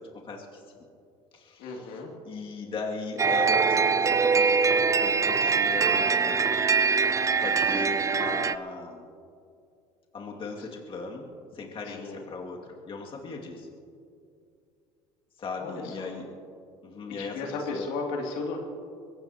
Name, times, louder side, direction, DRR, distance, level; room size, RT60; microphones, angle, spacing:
voice 1, 0.2-0.6 1.3-1.9 2.2-4.6 5.0-6.5 7.4-9.0 10.1-11.3 11.5-13.7 15.4-16.2 16.8-17.4 17.7-17.9, left 3 dB, 40° left, -1 dB, 2.4 m, -37 dB
voice 2, 1.6-2.1 11.8-12.2 15.6-16.1 17.2-18.6, left 3 dB, 75° left, 0 dB, 2.8 m, -34 dB
sound 1, 3.2-8.6, right 5 dB, 20° right, 0.5 m, -23 dB
23.0 x 17.5 x 3.0 m, 2.4 s
supercardioid pair, 95°, 14 cm